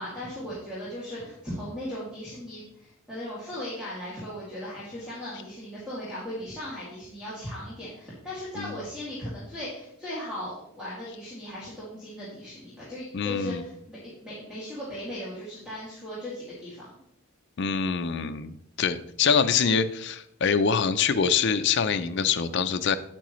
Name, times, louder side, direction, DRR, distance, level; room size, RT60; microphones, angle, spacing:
voice 1, 0.0-16.9, left 1 dB, 5° right, -9 dB, 2.3 m, -37 dB
voice 2, 13.1-13.6 17.6-23.0, left 6 dB, 55° left, 10 dB, 0.5 m, -25 dB
8.7 x 8.4 x 3.1 m, 0.75 s
head